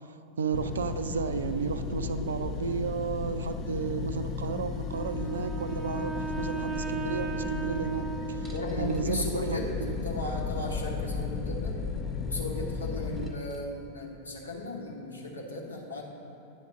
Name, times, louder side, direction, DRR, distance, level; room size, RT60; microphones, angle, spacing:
voice 1, 0.1-9.9, right 5 dB, 70° right, 10 dB, 0.3 m, -33 dB
sound 1, 0.5-13.3, left 5 dB, 35° left, 0.4 m, -35 dB
Wind instrument woodwind instrument, 4.8-9.1, right 6 dB, 20° right, 0.6 m, -36 dB
sound 2, 6.7-7.7 8.0-8.1 8.3-13.6, left 3 dB, 5° right, 0.9 m, -39 dB
voice 2, 8.5-9.7 10.0-11.8 12.3-16.0, left 2 dB, 75° left, -1 dB, 1.0 m, -36 dB
9.4 x 3.6 x 6.2 m, 2.7 s
figure-of-eight pair, 90°, 0 cm